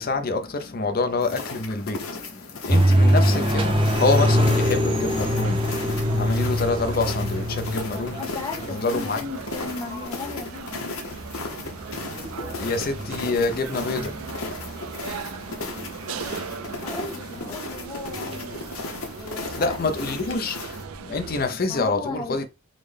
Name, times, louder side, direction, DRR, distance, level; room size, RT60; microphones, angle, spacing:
voice 1, 0.0-8.2 8.7-9.2 12.0-16.9 19.5-20.6 21.0-22.5, left 3 dB, 45° left, 0.5 m, -27 dB
sound 1, 1.2-20.8, left 4 dB, 85° left, 0.8 m, -36 dB
sound 2, 2.7-16.7 17.3-17.4 17.7-20.3 20.7-21.4, equal, 25° right, 0.5 m, -24 dB
sound 3, 5.2-21.5, right 7 dB, 90° right, 0.3 m, -39 dB
voice 2, 8.2-11.0 16.8-18.7 19.2-19.8 21.7-22.5, left 3 dB, 15° left, 0.8 m, -36 dB
3.8 x 2.1 x 3.2 m
head